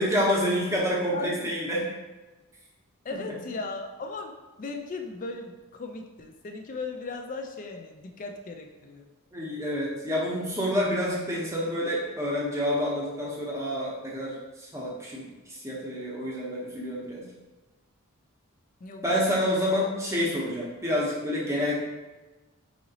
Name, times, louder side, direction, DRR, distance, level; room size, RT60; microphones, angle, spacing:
voice 1, 0.0-1.8 3.3-3.4 9.3-17.3 19.0-21.8, equal, 15° right, -4 dB, 0.7 m, -28 dB
voice 2, 1.1-1.5 3.0-9.1 18.8-19.2 19.5-19.6, left 3 dB, 35° left, 4 dB, 0.3 m, -37 dB
4.9 x 2.9 x 2.7 m, 1.2 s
head